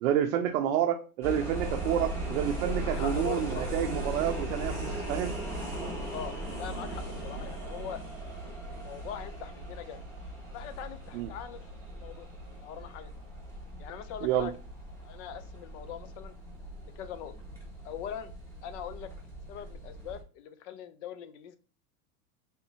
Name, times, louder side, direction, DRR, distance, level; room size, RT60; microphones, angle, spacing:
voice 1, 0.0-5.4 11.1-11.3 14.2-14.5, right 10 dB, 60° right, 5 dB, 0.5 m, -29 dB
sound 1, 1.2-20.2, right 1 dB, 5° left, 1.4 m, -38 dB
voice 2, 2.8-3.7 6.1-8.0 8.7-10.0 10.5-11.6 11.9-12.3 12.6-13.1 13.8-14.5 15.0-16.3 17.0-17.3 17.8-18.3 18.6-19.1 19.5-21.6, left 9 dB, 55° left, 12 dB, 0.6 m, -42 dB
3.5 x 2.6 x 2.8 m, 0.37 s
supercardioid pair, 130°, 45 cm